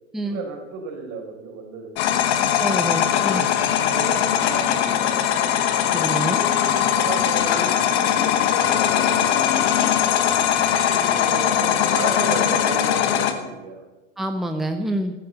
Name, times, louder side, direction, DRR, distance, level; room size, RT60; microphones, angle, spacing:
voice 1, 0.2-1.9 3.8-5.3 6.8-9.6 10.7-13.8, right 4 dB, 55° right, 3 dB, 4.9 m, -33 dB
sound 1, 2.0-13.3, left 9 dB, 60° left, 1.9 m, -20 dB
voice 2, 2.6-3.4 5.9-6.4 14.2-15.1, right 1 dB, ahead, 6 dB, 1.1 m, -27 dB
13.0 x 11.5 x 9.1 m, 1.1 s
hypercardioid pair, 85°, 37 cm